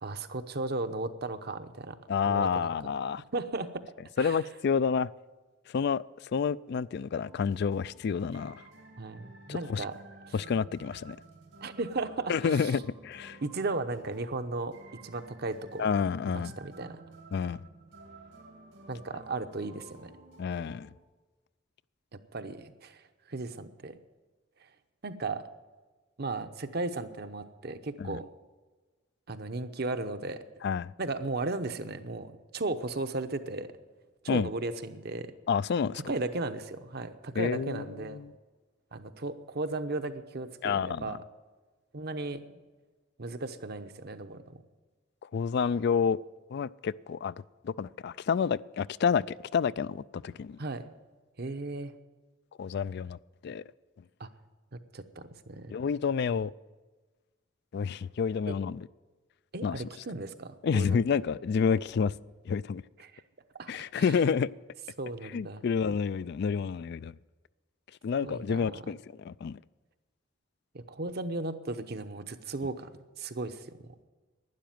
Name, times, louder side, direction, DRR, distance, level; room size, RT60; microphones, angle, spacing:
voice 1, 0.0-2.0 2.2-2.7 3.3-3.9 4.2-4.4 9.0-10.0 10.3-10.4 11.6-12.7 13.4-15.9 16.3-17.0 18.9-20.1 22.1-24.0 25.0-25.5 26.2-28.3 29.3-30.4 31.0-33.7 34.2-35.3 36.1-38.2 38.9-41.2 41.9-42.6 43.2-44.6 50.6-50.9 51.4-51.9 54.2-54.3 54.7-55.8 58.5-58.6 59.5-61.0 63.0-63.2 63.5-64.1 65.0-65.6 68.2-68.8 70.7-73.9, right 3 dB, 55° right, 0.9 m, -36 dB
voice 2, 2.1-3.2 4.2-5.1 5.7-6.0 6.3-8.6 9.5-9.8 10.3-11.2 12.3-13.4 15.8-16.5 17.3-17.6 20.4-20.9 28.0-28.2 30.6-30.9 34.3-34.5 35.5-36.0 37.4-38.3 40.6-41.2 45.3-46.2 46.5-47.3 47.6-50.6 52.6-53.2 53.4-53.6 55.7-56.5 57.7-58.9 59.6-59.8 60.6-62.1 62.5-62.8 63.7-64.5 65.3-67.1 68.0-69.6, left 6 dB, 60° left, 0.3 m, -29 dB
sound 1, 7.2-21.0, right 2 dB, 80° right, 2.8 m, -53 dB
12.0 x 10.0 x 9.3 m
head